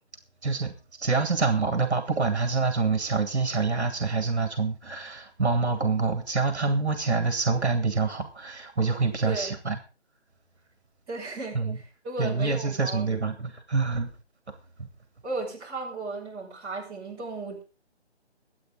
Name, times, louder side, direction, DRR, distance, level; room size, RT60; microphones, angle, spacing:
voice 1, 0.4-0.7 1.0-9.8 11.5-11.8 12.2-14.1, right 4 dB, 70° right, 2.2 m, -26 dB
voice 2, 11.1-13.3 15.2-17.6, right 3 dB, 15° right, 6.1 m, -35 dB
23.0 x 8.6 x 3.7 m
figure-of-eight pair, 155°, 34 cm